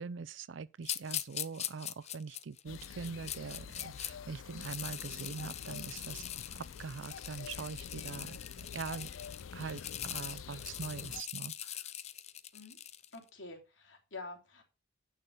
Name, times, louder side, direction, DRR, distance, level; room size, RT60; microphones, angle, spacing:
voice 1, 0.0-9.1 9.5-11.8, right 5 dB, 70° right, 0.5 m, -43 dB
sound 1, 0.8-4.1 4.5-13.2, left 11 dB, 35° left, 0.5 m, -42 dB
sound 2, 2.7-11.2, left 7 dB, 85° left, 0.5 m, -47 dB
voice 2, 13.1-14.6, left 3 dB, 70° left, 3.0 m, -47 dB
8.9 x 6.5 x 5.1 m
head